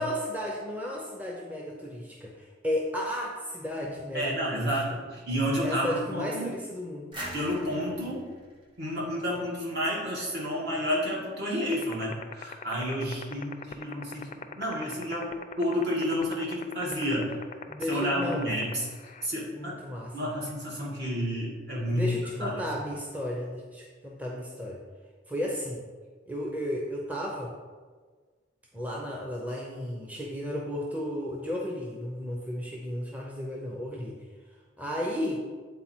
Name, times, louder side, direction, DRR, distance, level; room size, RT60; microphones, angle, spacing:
voice 1, 0.0-4.8 5.6-7.1 17.7-18.5 19.5-20.2 21.9-24.8 25.3-25.8 26.3-27.5 28.7-34.2 34.8-35.4, left 1 dB, 10° right, -2 dB, 0.6 m, -33 dB
voice 2, 4.1-6.5 7.3-8.3 8.8-17.3 17.9-18.9 19.2-19.7 20.1-22.6, equal, 60° right, -5 dB, 2.0 m, -30 dB
sound 1, 7.1-9.8, right 1 dB, 25° right, 1.3 m, -43 dB
sound 2, 11.7-19.3, left 6 dB, 35° left, 0.4 m, -38 dB
8.4 x 4.1 x 4.4 m, 1.5 s
head